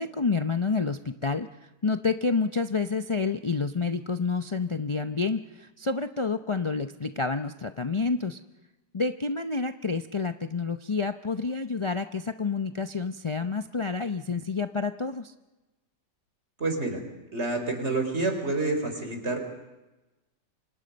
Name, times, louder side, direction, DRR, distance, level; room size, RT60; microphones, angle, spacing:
voice 1, 0.0-1.5 1.8-8.4 8.9-15.3, left 4 dB, 40° left, 8 dB, 0.4 m, -29 dB
voice 2, 16.6-17.0 17.3-19.4, right 2 dB, 40° right, 5 dB, 4.4 m, -28 dB
29.0 x 25.5 x 5.4 m, 1.1 s
omnidirectional pair, 1.8 m